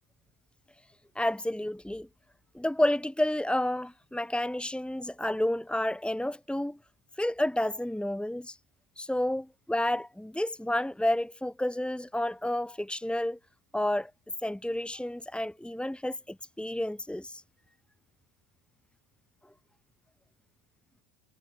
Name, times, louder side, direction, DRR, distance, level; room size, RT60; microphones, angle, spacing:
voice 1, 1.2-2.1 2.5-6.8 7.2-8.6 9.0-13.4 13.7-14.1 14.4-17.4, left 1 dB, 5° left, 4.0 m, -30 dB
supercardioid pair, 110°, 35 cm